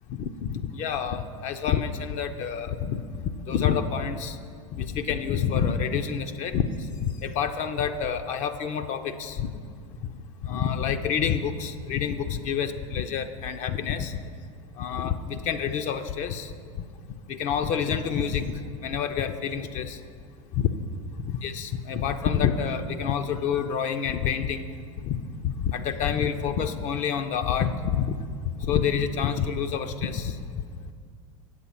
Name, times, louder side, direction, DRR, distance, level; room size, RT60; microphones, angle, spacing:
voice 1, 0.1-4.4 4.7-6.7 7.0-9.5 10.4-14.2 14.8-16.8 17.3-20.0 20.5-20.7 21.3-24.7 25.0-28.1 28.6-30.6, left 7 dB, 45° left, 8 dB, 0.5 m, -28 dB
8.0 x 7.7 x 5.7 m, 2.2 s
hypercardioid pair, 85°, 18 cm